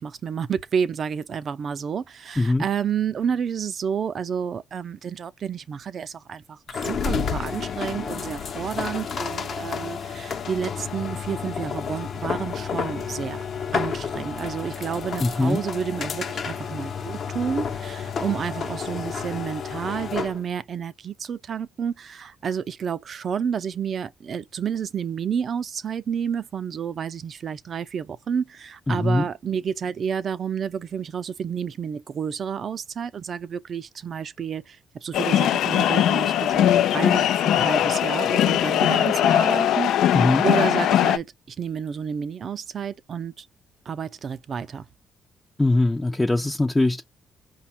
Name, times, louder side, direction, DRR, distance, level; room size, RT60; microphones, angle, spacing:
voice 1, 0.0-39.9 40.4-43.5 43.9-44.9, right 7 dB, 55° right, 0.5 m, -30 dB
sound 1, 6.7-20.4, left 6 dB, 55° left, 0.8 m, -31 dB
voice 2, 15.2-15.6 28.9-29.3 40.1-40.4 45.6-47.0, left 2 dB, 15° left, 0.5 m, -21 dB
sound 2, 35.1-41.2, left 11 dB, 80° left, 0.3 m, -20 dB
5.1 x 2.3 x 4.3 m
cardioid pair, 90°, 0 cm